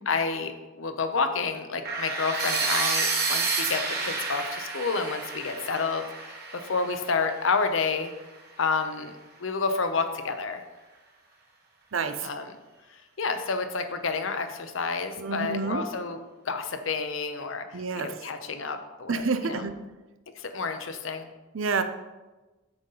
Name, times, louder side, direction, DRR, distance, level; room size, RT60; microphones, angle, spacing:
voice 1, 0.1-8.1 8.6-9.1 9.4-10.6 12.2-12.6 12.9-16.2 16.4-19.6 20.4-21.3, left 4 dB, 80° left, 8 dB, 0.8 m, -29 dB
sound 1, 1.8-7.8, right 4 dB, 50° right, 1.3 m, -30 dB
voice 2, 11.9-12.3 15.2-15.8 17.7-18.1 19.1-19.7 21.5-21.8, right 4 dB, 80° right, 9 dB, 0.6 m, -28 dB
7.8 x 3.9 x 5.6 m, 1.2 s
head